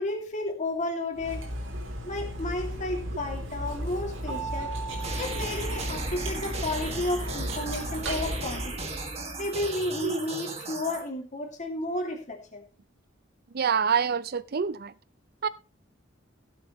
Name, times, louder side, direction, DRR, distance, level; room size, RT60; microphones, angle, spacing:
voice 1, 0.0-1.4 2.0-4.7 5.2-8.9 9.4-12.6, left 1 dB, 40° left, 2.5 m, -32 dB
Cutlery silverware, 1.1-8.9, equal, 80° right, 3.5 m, -35 dB
Mallet percussion, 4.3-6.8, right 6 dB, 20° left, 4.5 m, -40 dB
sound 1, 5.0-11.0, right 3 dB, 35° right, 2.0 m, -36 dB
voice 2, 13.5-14.9 15.4-15.5, right 6 dB, 55° right, 0.6 m, -26 dB
17.0 x 7.8 x 3.1 m
head